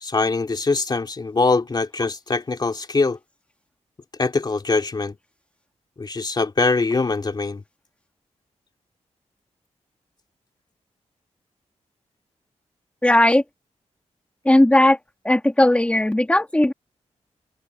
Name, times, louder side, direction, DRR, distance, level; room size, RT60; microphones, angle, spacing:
voice 1, 0.0-3.2 4.2-5.2 6.0-7.6, left 3 dB, 35° left, 2.6 m, -22 dB
voice 2, 13.0-13.4 14.5-15.0 15.2-16.7, left 1 dB, 10° left, 2.3 m, -16 dB
open air
wide cardioid pair, 115°, 12 cm